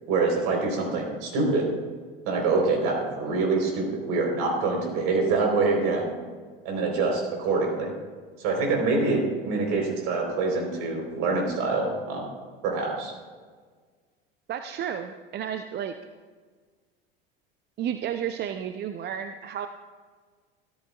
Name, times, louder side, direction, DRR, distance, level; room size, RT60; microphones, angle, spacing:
voice 1, 0.1-1.7 2.3-6.1 6.6-7.9 8.4-12.2 12.6-13.1, right 3 dB, 55° right, 1 dB, 4.2 m, -25 dB
voice 2, 14.5-15.9 17.8-19.7, right 9 dB, 35° right, 8 dB, 0.7 m, -32 dB
17.5 x 13.5 x 2.4 m, 1.5 s
figure-of-eight pair, 75°, 30 cm